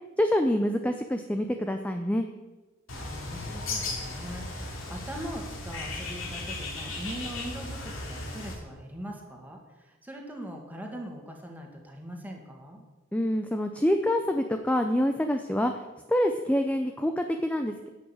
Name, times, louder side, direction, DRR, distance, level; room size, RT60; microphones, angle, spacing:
voice 1, 0.2-2.3 13.1-15.7 16.1-17.9, left 1 dB, 5° left, 6 dB, 0.5 m, -26 dB
Bird, 2.9-8.5, left 2 dB, 85° left, 2.7 m, -36 dB
voice 2, 2.9-12.8, equal, 10° right, 1 dB, 2.0 m, -41 dB
11.0 x 6.3 x 9.0 m, 1.2 s
head